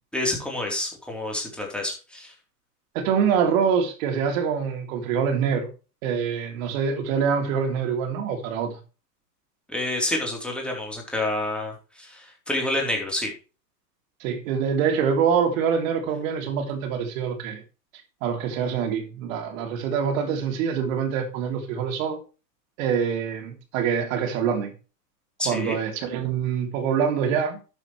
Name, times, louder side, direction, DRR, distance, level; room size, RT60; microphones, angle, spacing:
voice 1, 0.1-2.3 9.7-13.3 25.4-25.8, left 1 dB, ahead, 3.9 m, -28 dB
voice 2, 2.9-5.7 6.0-8.8 14.2-17.6 18.2-22.2 22.8-24.7 25.4-27.6, right 7 dB, 50° right, 3.3 m, -25 dB
12.5 x 7.8 x 3.3 m
hypercardioid pair, 130°, 49 cm